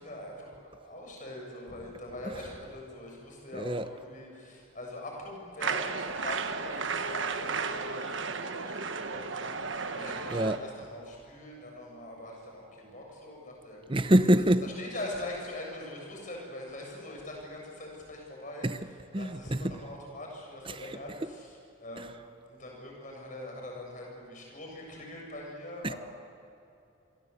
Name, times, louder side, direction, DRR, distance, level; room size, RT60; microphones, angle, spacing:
voice 1, 0.0-13.9 14.6-18.8 19.1-21.5 21.8-22.2 22.5-26.0, left 1 dB, 40° left, 7.1 m, -42 dB
voice 2, 3.5-3.9 10.3-10.6 13.9-14.6 18.6-18.8 19.1-19.8 20.7-21.0 22.0-22.1 25.8-25.9, right 1 dB, 25° right, 0.8 m, -26 dB
sound 1, 5.6-10.6, right 4 dB, 65° right, 1.3 m, -34 dB
27.5 x 23.0 x 8.3 m
head